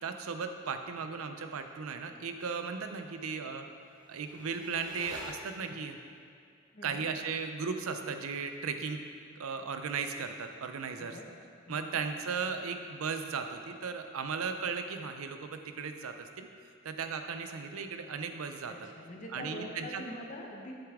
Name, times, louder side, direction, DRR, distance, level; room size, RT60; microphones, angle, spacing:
voice 1, 0.0-3.7 4.1-6.0 6.8-9.0 9.4-11.2 11.7-16.5 16.8-18.9 19.3-20.0, right 5 dB, 85° right, 7 dB, 0.5 m, -36 dB
sound 1, 3.6-6.0, equal, 20° right, 1.4 m, -49 dB
voice 2, 6.7-7.1 11.0-11.3 11.7-12.0 18.7-20.7, left 1 dB, 35° left, 0 dB, 0.8 m, -44 dB
7.9 x 6.8 x 3.6 m, 2.3 s
head